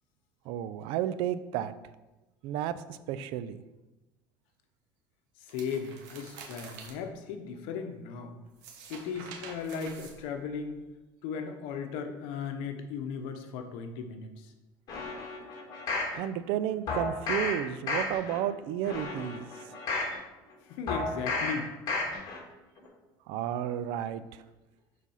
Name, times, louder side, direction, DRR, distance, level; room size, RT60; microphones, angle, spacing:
voice 1, 0.5-1.7 2.4-3.6 16.1-20.2 23.3-24.4, right 10 dB, 70° right, 14 dB, 0.5 m, -33 dB
voice 2, 5.5-8.3 8.9-10.8 11.2-14.5 20.7-21.7, left 6 dB, 75° left, 6 dB, 1.0 m, -37 dB
sound 1, 5.5-6.9 8.4-10.7, right 5 dB, 90° right, 1.3 m, -47 dB
sound 2, 14.9-16.1 16.9-17.5 17.9-18.4 18.8-20.1 20.9-21.5 21.9-22.4 22.8-22.9, left 3 dB, 45° left, 2.2 m, -32 dB
7.3 x 4.1 x 5.6 m, 1.1 s
cardioid pair, 125°, 9 cm